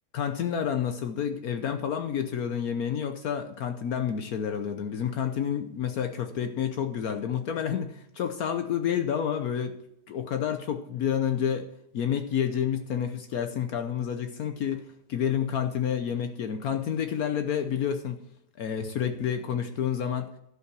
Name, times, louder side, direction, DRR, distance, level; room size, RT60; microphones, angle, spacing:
voice 1, 0.1-9.7 10.1-11.7 11.9-14.8 15.1-18.2 18.6-20.3, left 8 dB, 65° left, 7 dB, 1.2 m, -29 dB
12.0 x 5.7 x 6.1 m, 0.76 s
omnidirectional pair, 1.8 m